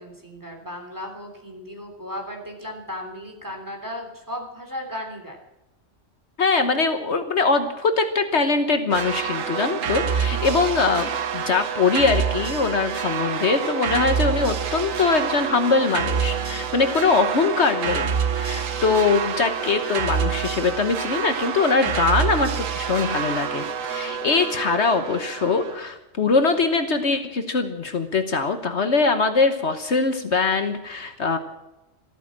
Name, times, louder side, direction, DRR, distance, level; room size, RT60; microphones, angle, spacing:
voice 1, 0.0-5.4 9.7-10.2, left 1 dB, 15° right, 2 dB, 3.3 m, -36 dB
voice 2, 6.4-31.4, left 4 dB, 60° left, 7 dB, 1.4 m, -22 dB
sound 1, 8.9-25.8, right 7 dB, 85° right, 1.4 m, -27 dB
14.0 x 13.5 x 7.4 m, 0.95 s
omnidirectional pair, 1.3 m